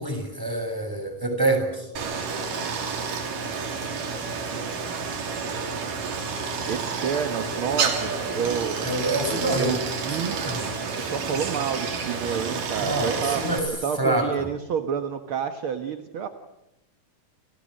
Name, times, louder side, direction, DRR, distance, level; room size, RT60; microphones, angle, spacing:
voice 1, 0.0-1.9 8.8-9.9 10.2-10.7 12.8-13.7 14.0-14.5, right 2 dB, 5° right, 5 dB, 6.8 m, -26 dB
Stream, 2.0-13.6, right 5 dB, 75° right, 4.6 m, -30 dB
voice 2, 6.7-10.4 11.0-13.5 13.8-16.3, right 7 dB, 55° right, 7 dB, 1.6 m, -29 dB
29.5 x 28.0 x 6.6 m, 0.86 s
omnidirectional pair, 3.9 m